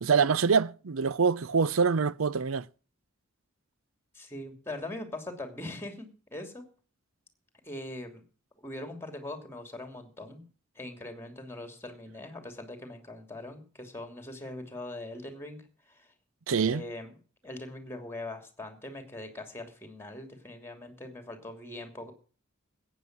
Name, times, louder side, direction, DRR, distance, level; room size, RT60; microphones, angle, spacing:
voice 1, 0.0-2.7 16.5-16.8, right 5 dB, 70° right, 0.6 m, -25 dB
voice 2, 4.1-6.6 7.6-8.2 8.6-10.5 10.7-16.1 16.6-17.1 17.4-22.1, left 1 dB, 10° left, 2.9 m, -41 dB
15.0 x 9.2 x 6.1 m
head